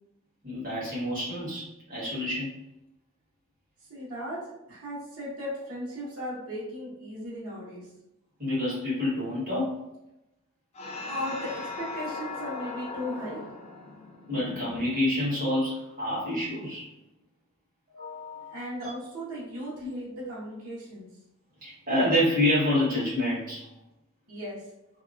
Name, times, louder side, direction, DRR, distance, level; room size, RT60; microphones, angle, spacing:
voice 1, 0.4-2.5 8.4-9.8 14.3-16.8 17.9-18.6 18.8-18.9 19.8-19.9 21.6-23.6, left 1 dB, 40° right, -9 dB, 1.5 m, -28 dB
voice 2, 3.9-4.4 4.7-7.9 11.1-13.4 18.5-21.1 24.3-24.6, equal, 85° right, -8 dB, 1.1 m, -36 dB
sound 1, 10.7-15.5, left 3 dB, 30° left, 0.4 m, -39 dB
2.8 x 2.3 x 2.5 m, 0.89 s
head